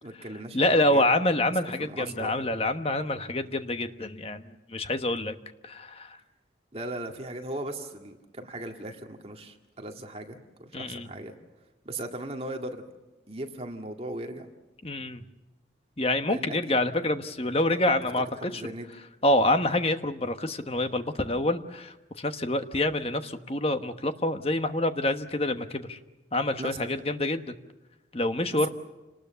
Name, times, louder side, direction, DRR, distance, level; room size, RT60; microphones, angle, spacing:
voice 1, 0.0-1.0 1.8-2.3 6.7-11.4 11.8-12.8 13.3-14.5 16.3-16.7 18.4-18.9 26.6-26.9 28.5-28.7, right 1 dB, 30° right, 3 dB, 2.0 m, -38 dB
voice 2, 0.5-4.4 4.7-5.3 5.6-6.2 10.7-11.1 14.8-15.2 16.0-18.6 19.2-26.0 26.3-27.4 28.1-28.7, left 1 dB, 30° left, 8 dB, 1.2 m, -27 dB
29.0 x 19.5 x 7.0 m, 1.1 s
head